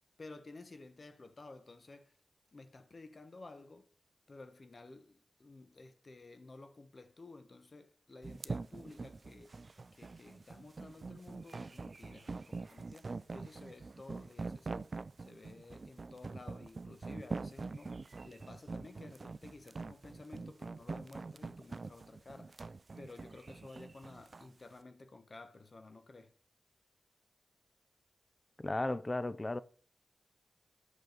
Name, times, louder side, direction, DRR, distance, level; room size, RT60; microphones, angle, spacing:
voice 1, 0.2-2.2 2.5-3.9 4.3-9.6 9.9-14.9 15.2-22.7 23.0-26.3, left 3 dB, 45° left, 1.1 m, -53 dB
sound 1, 8.2-24.5, right 3 dB, 45° right, 0.4 m, -44 dB
voice 2, 28.6-29.6, left 2 dB, 25° left, 0.5 m, -35 dB
8.3 x 6.2 x 5.1 m
cardioid pair, 65°, 0 cm